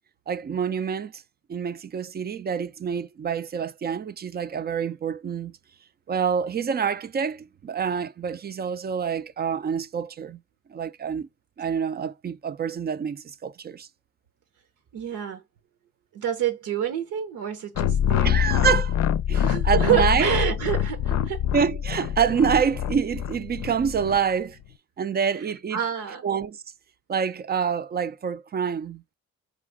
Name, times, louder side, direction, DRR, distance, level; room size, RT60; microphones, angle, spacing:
voice 1, 0.3-1.2 1.5-5.5 6.1-10.4 10.7-11.3 11.6-13.9 18.2-19.0 19.3-20.3 21.2-21.3 21.5-24.6 25.0-25.8 26.2-26.6 27.1-29.1, right 7 dB, 35° right, 0.4 m, -27 dB
voice 2, 14.9-15.4 16.1-18.4 19.3-21.5 25.7-26.2, right 9 dB, 85° right, 1.0 m, -27 dB
sound 1, 17.8-24.2, left 10 dB, 65° left, 0.5 m, -25 dB
4.9 x 2.5 x 3.5 m
cardioid pair, 90°, 30 cm